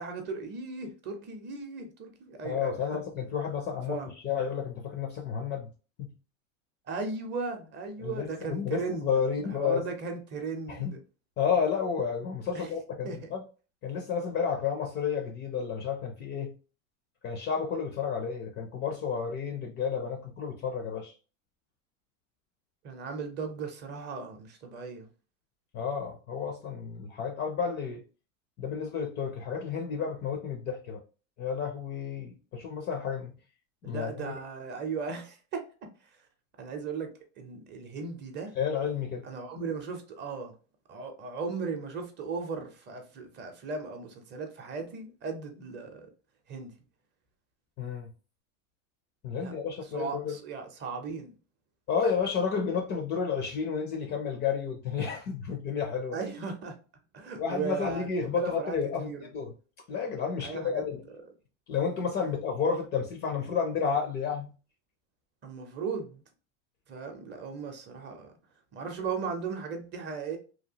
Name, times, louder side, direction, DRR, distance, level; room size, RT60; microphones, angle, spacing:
voice 1, 0.0-3.0 3.9-4.1 6.9-9.1 9.4-11.0 12.5-12.7 13.0-13.3 22.8-25.1 33.8-35.6 36.6-37.1 37.4-38.5 39.2-40.5 40.9-46.1 46.5-46.7 49.4-49.5 49.9-51.3 56.1-56.8 57.1-59.2 60.4-60.8 65.4-66.2 66.9-68.3 68.7-70.4, right 5 dB, 30° right, 0.6 m, -37 dB
voice 2, 2.4-5.7 6.0-6.1 8.0-9.9 10.7-11.0 11.4-13.4 13.8-16.5 17.2-21.1 25.7-28.0 28.6-31.0 31.4-33.3 33.8-34.3 38.6-39.2 47.8-48.1 49.2-50.4 51.9-56.2 57.4-59.5 59.9-61.0 61.7-64.5, left 6 dB, 30° left, 0.4 m, -31 dB
2.8 x 2.3 x 2.7 m
supercardioid pair, 130°, 38 cm